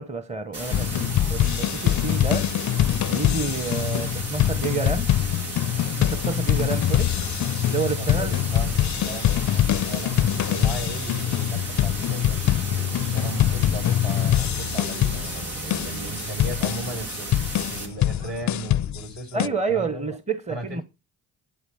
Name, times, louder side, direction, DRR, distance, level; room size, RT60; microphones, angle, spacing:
voice 1, 0.0-2.5 3.1-5.1 6.0-7.2 7.6-8.3 19.3-20.8, right 4 dB, 15° right, 0.9 m, -29 dB
sound 1, 0.5-17.9, right 2 dB, 80° right, 2.2 m, -35 dB
sound 2, 0.7-19.5, left 12 dB, 40° left, 0.4 m, -24 dB
sound 3, 0.7-18.7, right 2 dB, 35° right, 1.6 m, -41 dB
voice 2, 8.0-12.6 13.0-17.3 17.7-20.1 20.5-20.8, right 2 dB, 60° right, 6.4 m, -36 dB
11.5 x 4.1 x 7.0 m
hypercardioid pair, 45°, 50 cm